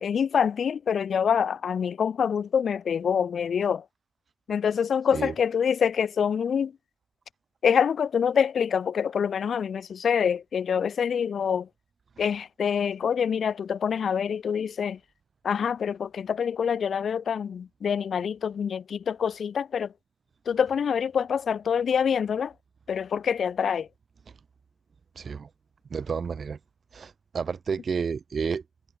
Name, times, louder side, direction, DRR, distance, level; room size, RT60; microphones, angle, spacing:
voice 1, 0.0-3.8 4.5-6.7 7.6-11.7 12.2-15.0 15.4-19.9 20.5-22.5 22.9-23.9, left 7 dB, 80° left, 2.0 m, -26 dB
voice 2, 25.2-25.5 25.9-26.6 26.9-28.6, right 6 dB, 70° right, 4.7 m, -30 dB
cardioid pair, 45°, 0 cm